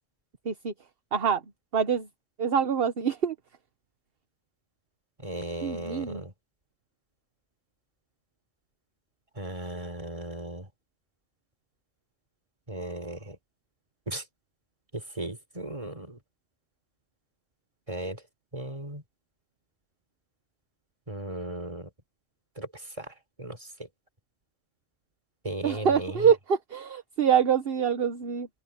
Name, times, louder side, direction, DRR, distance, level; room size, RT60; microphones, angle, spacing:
voice 1, 1.1-1.4 1.7-2.1 2.4-3.3 5.6-6.2 25.6-28.5, right 7 dB, 55° right, 1.3 m, -25 dB
voice 2, 5.2-6.3 9.4-10.7 12.7-13.4 14.1-14.2 14.9-16.2 17.9-18.2 18.5-19.0 21.1-21.9 22.6-23.9 25.4-26.3, right 1 dB, 30° right, 4.0 m, -36 dB
omnidirectional pair, 1.2 m